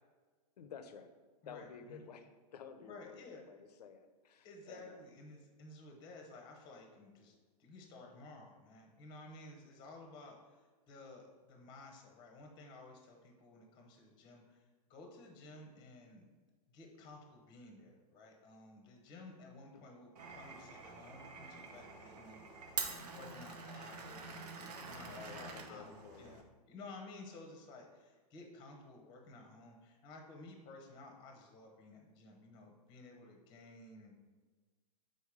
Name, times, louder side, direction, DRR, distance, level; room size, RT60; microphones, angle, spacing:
voice 1, 0.6-1.1 1.4-5.0 19.7-19.8 25.0-26.5, left 7 dB, 85° left, 9 dB, 0.7 m, -52 dB
voice 2, 1.4-2.0 2.8-3.4 4.4-7.3 7.6-16.2 16.7-26.4 26.6-34.1, left 2 dB, 20° left, 2 dB, 0.9 m, -54 dB
Glass, 20.2-26.4, right 4 dB, 80° right, 0.9 m, -46 dB
5.6 x 4.0 x 4.9 m, 1.4 s
supercardioid pair, 155°, 20 cm